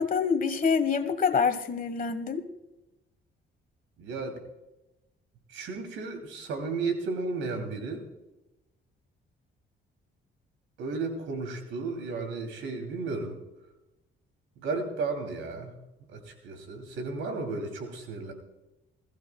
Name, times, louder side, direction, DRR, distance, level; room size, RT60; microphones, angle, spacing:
voice 1, 0.0-2.5, left 5 dB, 45° left, 9 dB, 1.4 m, -26 dB
voice 2, 4.0-4.4 5.5-8.0 10.8-13.4 14.6-15.7 16.1-18.3, right 3 dB, 85° right, 5 dB, 2.8 m, -33 dB
20.5 x 14.5 x 2.3 m, 0.98 s
cardioid pair, 90°, 20 cm